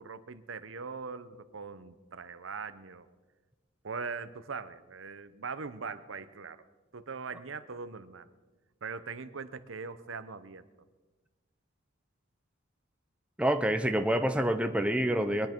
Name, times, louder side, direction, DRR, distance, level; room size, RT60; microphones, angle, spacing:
voice 1, 0.0-3.1 3.8-6.6 6.9-8.3 8.8-10.7, right 5 dB, 75° right, 12 dB, 0.8 m, -41 dB
voice 2, 13.4-15.5, right 1 dB, 5° right, 7 dB, 0.6 m, -27 dB
22.0 x 10.5 x 4.5 m, 1.2 s
head